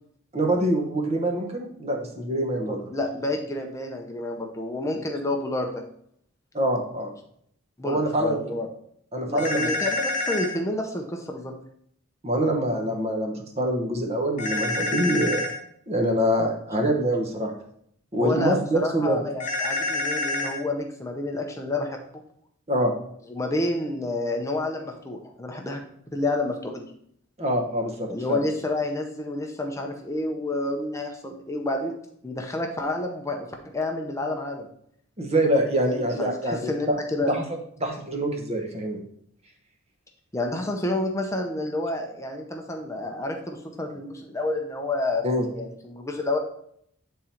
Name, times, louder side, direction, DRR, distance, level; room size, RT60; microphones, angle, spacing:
voice 1, 0.3-2.8 6.5-7.1 7.8-8.4 9.1-9.7 12.2-15.4 15.9-17.5 18.1-19.2 22.7-22.9 27.4-28.4 35.2-37.0 37.3-37.4 37.8-39.0 45.2-45.4, right 1 dB, 30° right, 2 dB, 1.0 m, -25 dB
voice 2, 2.6-5.8 7.8-8.7 9.3-11.5 18.2-22.2 23.3-25.8 26.1-26.9 28.1-31.9 32.2-34.7 35.8-37.4 40.3-45.2 45.5-46.4, left 2 dB, 15° left, 2 dB, 0.6 m, -29 dB
sound 1, 9.4-10.5 14.4-15.5 19.4-20.6, left 2 dB, 35° left, 1.4 m, -27 dB
8.6 x 3.7 x 4.4 m, 0.69 s
head